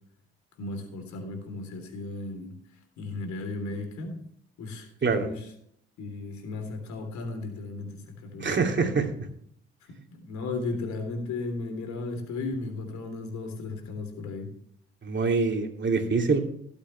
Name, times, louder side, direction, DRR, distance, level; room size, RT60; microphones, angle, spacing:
voice 1, 0.6-2.6 3.0-4.2 4.6-5.5 6.0-8.5 10.1-14.5, left 3 dB, 70° left, 5 dB, 3.4 m, -35 dB
voice 2, 8.4-9.1 15.0-16.4, right 4 dB, 40° right, 3 dB, 2.8 m, -25 dB
17.0 x 8.2 x 3.3 m, 0.68 s
hypercardioid pair, 55°, 30 cm